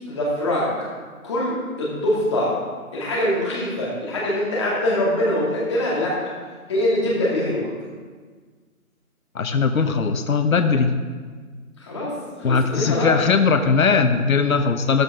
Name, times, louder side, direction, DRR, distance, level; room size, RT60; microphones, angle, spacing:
voice 1, 0.1-0.7 1.2-2.6 2.9-6.3 6.7-7.7 11.8-13.2, left 1 dB, 20° left, -5 dB, 2.4 m, -23 dB
voice 2, 9.3-11.0 12.4-15.0, left 5 dB, 70° left, 7 dB, 1.0 m, -19 dB
13.5 x 12.5 x 3.7 m, 1.5 s
hypercardioid pair, 170°, 43 cm